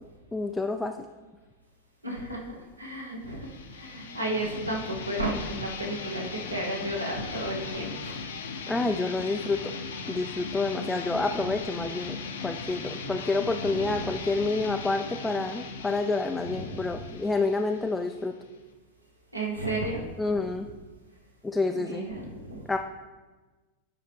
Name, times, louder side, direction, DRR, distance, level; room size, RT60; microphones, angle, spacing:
voice 1, 0.3-0.9 8.7-9.7 10.1-18.3 20.2-20.7 21.4-22.0 22.7-22.8, left 3 dB, 10° left, 4 dB, 0.3 m, -28 dB
voice 2, 2.0-8.2 11.2-11.5 13.6-14.2 16.4-17.0 19.3-20.0 20.3-20.4 21.7-22.6, right 1 dB, 85° right, -1 dB, 1.3 m, -33 dB
sound 1, 3.3-18.7, left 5 dB, 65° left, 0.7 m, -38 dB
8.7 x 5.4 x 3.4 m, 1.3 s
figure-of-eight pair, 90°, 0 cm